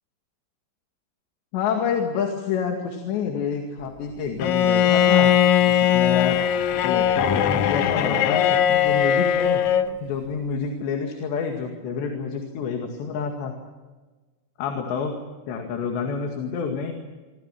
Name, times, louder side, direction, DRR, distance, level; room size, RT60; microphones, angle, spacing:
voice 1, 1.5-5.3 5.6-6.4 6.8-9.6 10.0-13.5 14.6-15.2 15.5-16.9, left 6 dB, 90° left, 3 dB, 4.4 m, -28 dB
Bowed string instrument, 4.4-9.9, left 9 dB, 70° left, 2.0 m, -20 dB
27.5 x 25.5 x 6.1 m, 1.3 s
omnidirectional pair, 4.9 m